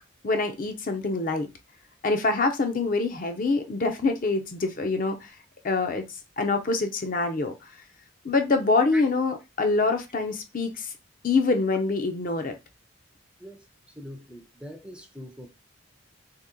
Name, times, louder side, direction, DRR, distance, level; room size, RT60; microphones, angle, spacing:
voice 1, 0.2-1.5 2.0-5.3 5.6-6.0 6.4-7.5 8.2-10.9 11.2-12.5, left 3 dB, 45° left, 0.5 m, -25 dB
voice 2, 13.4-15.5, equal, 5° right, 0.4 m, -42 dB
2.9 x 2.8 x 3.7 m
head